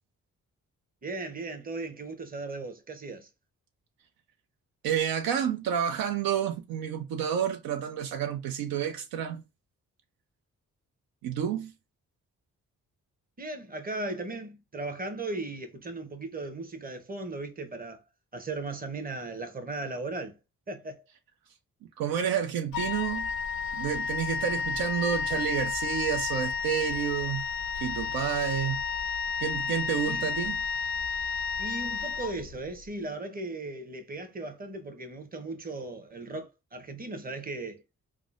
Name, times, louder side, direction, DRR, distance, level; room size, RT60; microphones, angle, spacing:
voice 1, 1.0-3.3 13.4-18.0 18.3-20.4 20.7-21.0 30.1-30.2 31.6-37.8, right 2 dB, 25° right, 0.9 m, -37 dB
voice 2, 4.8-9.4 11.2-11.7 22.0-23.3 23.7-27.5 27.8-28.8 29.4-30.6, right 8 dB, 80° right, 0.5 m, -30 dB
Wind instrument woodwind instrument, 22.7-32.8, left 5 dB, 75° left, 0.5 m, -32 dB
3.6 x 2.0 x 2.4 m
supercardioid pair, 50°, 35 cm